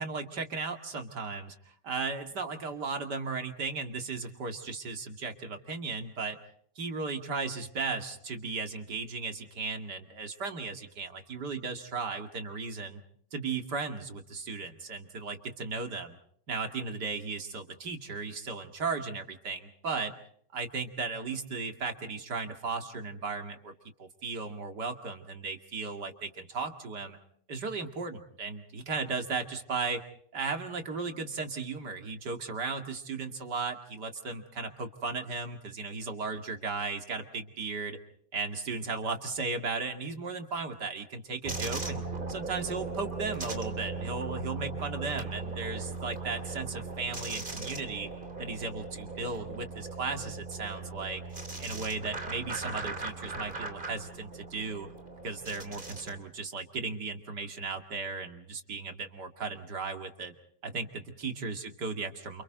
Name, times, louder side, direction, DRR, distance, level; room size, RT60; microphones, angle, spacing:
voice 1, 0.0-1.5 1.8-6.4 6.8-13.0 13.3-16.2 16.5-20.1 20.5-23.7 24.0-27.2 27.5-30.0 30.3-38.0 38.3-42.0 42.3-48.1 48.4-51.2 51.6-54.9 55.2-60.3 60.6-60.9 61.2-62.4, right 4 dB, 75° right, 5 dB, 2.9 m, -36 dB
sound 1, 41.4-56.2, right 3 dB, 30° right, 3.0 m, -38 dB
30.0 x 28.5 x 3.9 m, 0.65 s
omnidirectional pair, 1.8 m